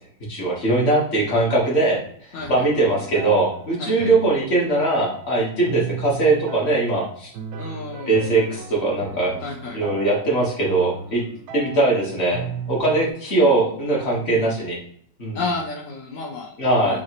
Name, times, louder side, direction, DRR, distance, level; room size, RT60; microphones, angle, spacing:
voice 1, 0.3-2.0 2.5-7.3 8.1-9.4 9.7-11.2 11.5-14.8 15.2-15.4 16.6-17.0, right 2 dB, 40° left, -3 dB, 1.5 m, -21 dB
voice 2, 2.3-2.7 3.8-4.1 7.6-8.2 9.4-9.8 13.0-13.2 14.3-14.5 15.3-16.5 16.8-17.0, left 3 dB, 65° left, -1 dB, 0.8 m, -31 dB
sound 1, 2.4-13.1, right 6 dB, 70° right, 0.9 m, -35 dB
4.8 x 3.0 x 2.9 m, 0.63 s
omnidirectional pair, 1.9 m